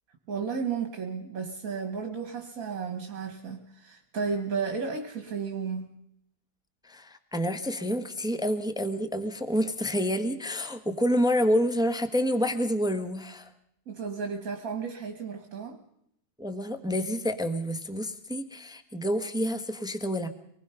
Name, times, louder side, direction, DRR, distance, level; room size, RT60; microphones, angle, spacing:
voice 1, 0.3-5.9 13.9-15.8, right 5 dB, 60° right, 6 dB, 1.9 m, -33 dB
voice 2, 6.8-13.5 16.4-20.3, equal, 5° right, 9 dB, 1.1 m, -28 dB
25.0 x 19.5 x 5.7 m, 0.74 s
omnidirectional pair, 1.7 m